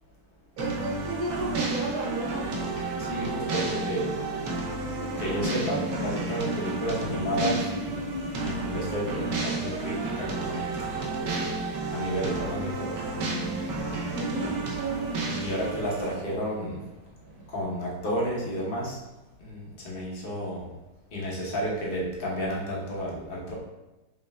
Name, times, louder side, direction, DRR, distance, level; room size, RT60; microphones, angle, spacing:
sound 1, 0.6-9.7 10.0-10.1, left 3 dB, 85° left, 1.5 m, -40 dB
voice 1, 0.6-2.7 14.1-15.0, right 2 dB, 50° right, -7 dB, 1.3 m, -33 dB
sound 2, 0.6-16.1, right 3 dB, 70° right, 0.8 m, -32 dB
voice 2, 3.0-4.1 5.2-7.7 8.4-10.8 11.9-12.9 14.2-14.7 15.4-16.8 17.5-19.0 19.4-20.7 21.1-23.5, equal, 60° left, -4 dB, 0.6 m, -31 dB
Train, 5.1-17.6, right 1 dB, 85° right, 1.7 m, -45 dB
5.0 x 3.2 x 2.2 m, 1.0 s
omnidirectional pair, 2.2 m